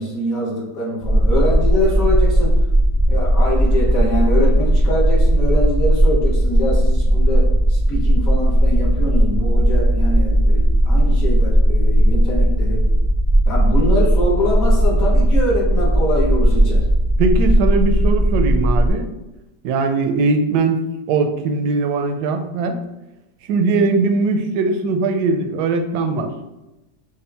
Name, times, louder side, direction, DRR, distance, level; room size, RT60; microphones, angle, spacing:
voice 1, 0.0-2.5 3.1-7.4 7.7-12.8 13.5-16.8, left 1 dB, 55° left, -4 dB, 1.4 m, -23 dB
sound 1, 1.0-18.9, right 1 dB, 15° right, 0.7 m, -16 dB
voice 2, 17.2-19.1 19.6-20.8 21.1-22.8 23.5-26.3, right 3 dB, 75° right, 6 dB, 1.1 m, -20 dB
5.3 x 2.4 x 3.3 m, 0.97 s
omnidirectional pair, 1.9 m